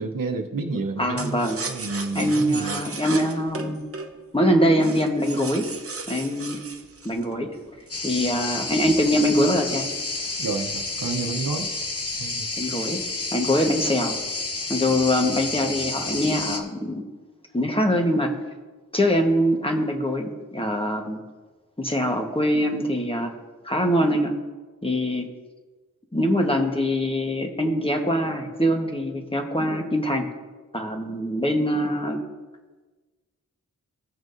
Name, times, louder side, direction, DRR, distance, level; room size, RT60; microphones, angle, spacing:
voice 1, 0.0-2.8 10.4-11.7 12.2-12.4, right 3 dB, 90° right, 5 dB, 0.9 m, -30 dB
voice 2, 1.0-1.6 2.1-3.8 4.3-5.7 6.1-6.6 7.0-7.5 8.0-9.9 12.6-13.0 13.3-14.1 14.7-17.0 17.5-18.3 18.9-21.2 21.8-23.3 23.6-24.3 24.8-25.3 26.1-30.3 30.7-32.2, equal, 15° left, 2 dB, 1.2 m, -23 dB
sound 1, 1.2-8.1 8.6-11.1 11.5-11.6 11.9-12.2 12.6-13.3 13.7-14.2, right 4 dB, 45° right, 0.9 m, -37 dB
sound 2, 7.9-16.6, left 3 dB, 45° left, 1.0 m, -30 dB
16.0 x 6.2 x 2.6 m, 1.3 s
wide cardioid pair, 65°, 32 cm